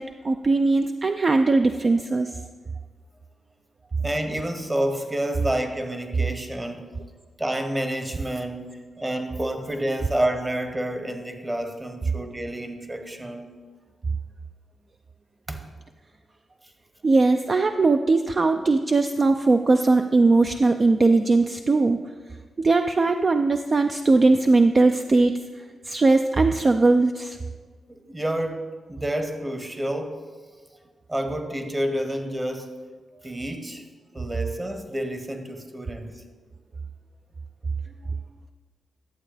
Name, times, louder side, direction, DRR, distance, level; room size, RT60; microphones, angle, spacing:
voice 1, 0.0-2.4 17.0-22.0 22.6-27.4, right 3 dB, 45° right, 7 dB, 0.4 m, -20 dB
voice 2, 4.0-6.9 7.4-8.7 9.0-13.5 15.5-15.6 27.9-30.2 31.1-32.7 33.2-33.8 34.1-36.1, right 1 dB, 20° right, 6 dB, 1.2 m, -29 dB
11.0 x 7.6 x 3.4 m, 1.4 s
cardioid pair, 60°, 0 cm